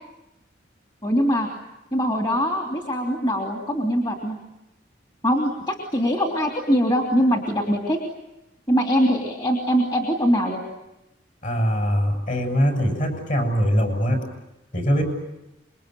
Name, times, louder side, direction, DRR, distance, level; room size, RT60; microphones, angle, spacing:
voice 1, 1.0-1.5 1.9-4.4 5.2-8.0 8.7-10.6, equal, 20° left, 1 dB, 3.0 m, -22 dB
voice 2, 11.4-14.2 14.7-15.0, equal, 40° left, 5 dB, 6.9 m, -22 dB
27.0 x 23.0 x 9.2 m, 0.94 s
head